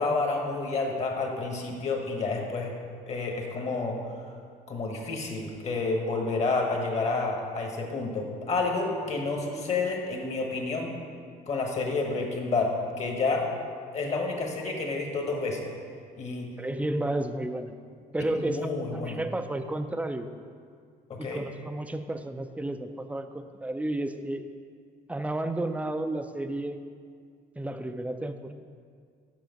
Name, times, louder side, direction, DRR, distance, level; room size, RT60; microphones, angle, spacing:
voice 1, 0.0-2.7 3.1-4.0 4.7-10.9 11.5-13.5 13.9-15.7 16.2-16.5 18.3-19.2 21.1-21.4, left 3 dB, 40° left, 1 dB, 1.3 m, -29 dB
voice 2, 16.6-17.7 18.1-18.6 18.9-20.3 21.2-24.5 25.1-26.8 27.6-28.5, right 1 dB, 10° right, 9 dB, 0.4 m, -32 dB
7.7 x 5.3 x 5.2 m, 2.1 s
cardioid pair, 110°, 17 cm